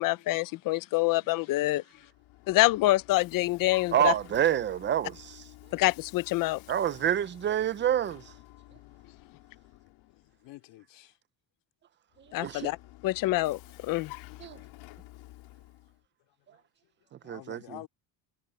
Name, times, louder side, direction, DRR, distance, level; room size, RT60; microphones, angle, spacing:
voice 1, 0.0-1.8 2.5-4.1 5.7-6.6 12.3-12.8 13.0-14.1, left 18 dB, 45° left, 0.5 m, -26 dB
Vehicle, 1.9-10.4 12.1-16.0, left 19 dB, 85° left, 3.3 m, -51 dB
voice 2, 3.9-5.4 6.7-8.3 12.4-12.7 14.4-14.6 17.2-17.8, right 10 dB, 25° right, 0.4 m, -27 dB
voice 3, 10.1-11.2 17.0-17.9, left 17 dB, 65° left, 2.8 m, -49 dB
cardioid pair, 170°, 46 cm